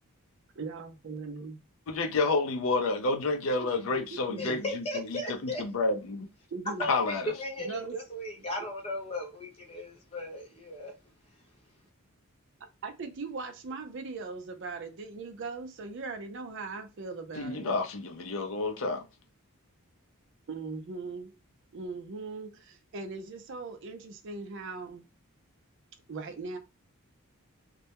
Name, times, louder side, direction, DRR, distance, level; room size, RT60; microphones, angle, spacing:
voice 1, 0.6-1.6 4.1-4.6 6.5-6.9 7.6-8.0 8.6-8.7 12.8-17.8 20.5-21.4 21.7-25.1 26.1-26.6, right 4 dB, 55° right, 0.5 m, -39 dB
voice 2, 1.9-6.3 6.9-7.3 17.4-19.0, left 3 dB, 65° left, 0.5 m, -30 dB
voice 3, 4.4-5.6 6.8-10.9, left 1 dB, 25° left, 0.7 m, -36 dB
2.2 x 2.1 x 2.8 m
head